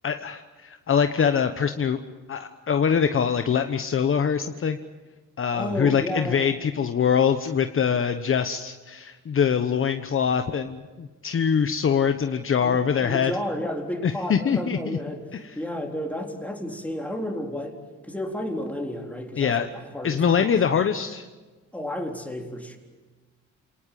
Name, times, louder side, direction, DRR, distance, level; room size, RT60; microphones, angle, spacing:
voice 1, 0.0-2.0 2.3-4.8 5.4-13.3 14.0-15.0 19.4-19.7 20.0-21.2, left 7 dB, 45° left, 7 dB, 1.2 m, -23 dB
voice 2, 5.5-6.5 12.6-15.3 15.6-20.8 21.7-22.8, left 1 dB, 5° left, 1 dB, 4.0 m, -32 dB
29.0 x 18.5 x 7.7 m, 1.3 s
cardioid pair, 90°, 30 cm